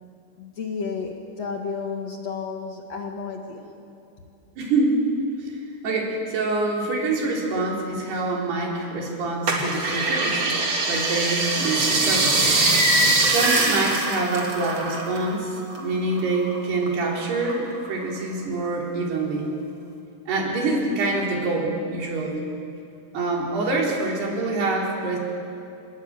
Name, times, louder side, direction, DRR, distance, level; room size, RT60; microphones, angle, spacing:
voice 1, 0.4-3.7, left 5 dB, 50° left, 2 dB, 2.4 m, -32 dB
voice 2, 4.6-4.9 5.4-5.6 5.8-10.6 10.9-12.4 13.2-19.5 20.3-22.4 23.1-25.2, right 3 dB, 80° right, -1 dB, 5.8 m, -26 dB
sound 1, 9.5-15.3 15.6-16.9 17.3-18.2 18.7-18.8, right 2 dB, 40° right, 3.8 m, -22 dB
27.0 x 21.0 x 9.0 m, 2.5 s
omnidirectional pair, 4.7 m